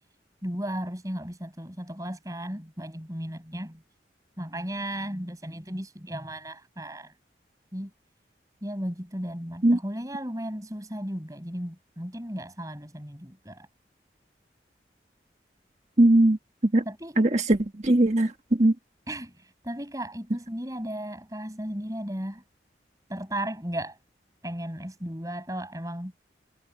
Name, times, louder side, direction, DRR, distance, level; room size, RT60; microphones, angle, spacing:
voice 1, 0.4-3.8 4.4-7.1 7.7-7.9 8.6-13.7 16.9-17.2 19.1-22.4 23.1-24.0 24.4-26.1, right 1 dB, 20° right, 7.9 m, -35 dB
voice 2, 16.0-16.4 16.7-16.8 17.2-18.7, right 1 dB, 40° right, 1.6 m, -20 dB
head